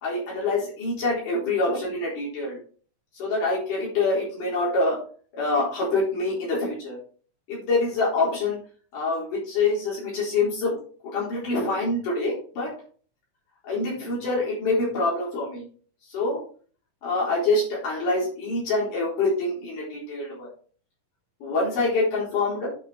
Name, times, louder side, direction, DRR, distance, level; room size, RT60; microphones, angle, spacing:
voice 1, 0.0-2.6 3.2-5.0 5.4-7.0 7.5-8.6 8.9-10.8 11.1-12.7 13.6-15.7 16.1-16.4 17.0-20.5 21.4-22.7, left 3 dB, 90° left, -6 dB, 5.7 m, -25 dB
9.7 x 6.3 x 4.4 m, 0.42 s
omnidirectional pair, 3.5 m